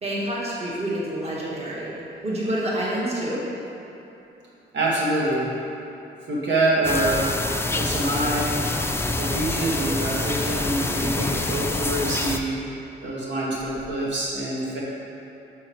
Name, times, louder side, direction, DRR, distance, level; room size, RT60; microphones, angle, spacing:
voice 1, 0.0-3.4, right 1 dB, 35° right, -6 dB, 1.6 m, -28 dB
voice 2, 4.7-5.5 6.3-7.3 7.7-8.5 9.2-12.6 13.0-14.8, right 2 dB, 75° right, -6 dB, 1.5 m, -25 dB
sound 1, 6.8-12.4, left 2 dB, 15° left, 0.4 m, -26 dB
6.5 x 6.3 x 4.4 m, 2.9 s
cardioid pair, 115°, 19 cm